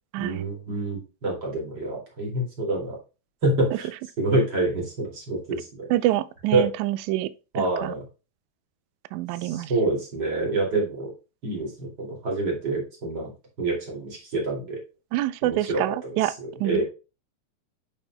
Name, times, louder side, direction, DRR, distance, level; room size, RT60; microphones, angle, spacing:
voice 1, 0.2-3.0 3.4-3.9 4.2-5.9 6.5-6.7 7.5-8.0 9.4-11.1 11.4-13.3 13.6-14.8 15.4-16.8, right 2 dB, 35° right, 2.8 m, -27 dB
voice 2, 5.9-7.3 7.6-7.9 9.1-9.7 15.1-16.3 16.6-16.8, right 15 dB, 80° right, 1.9 m, -26 dB
8.1 x 6.8 x 2.2 m
omnidirectional pair, 3.5 m